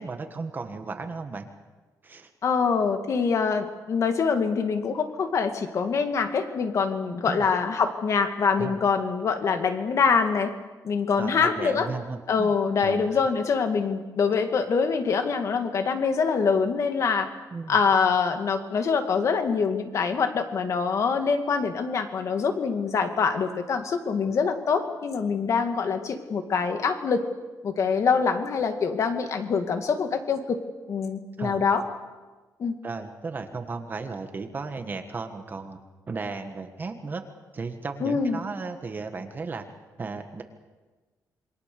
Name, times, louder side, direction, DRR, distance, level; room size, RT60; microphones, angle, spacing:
voice 1, 0.0-1.5 2.0-2.3 7.3-7.5 8.6-8.8 11.2-12.5 12.8-13.1 17.5-17.8 31.4-31.7 32.8-35.8 36.1-37.2 37.5-39.6 40.0-40.4, right 4 dB, 30° right, 6 dB, 1.5 m, -35 dB
voice 2, 2.4-10.5 10.8-11.9 12.3-17.3 17.7-27.3 27.6-30.6 30.9-31.8 32.6-32.7 38.0-38.4, left 5 dB, 50° left, 7 dB, 2.2 m, -24 dB
27.5 x 23.5 x 6.8 m, 1.3 s
wide cardioid pair, 170°, 7 cm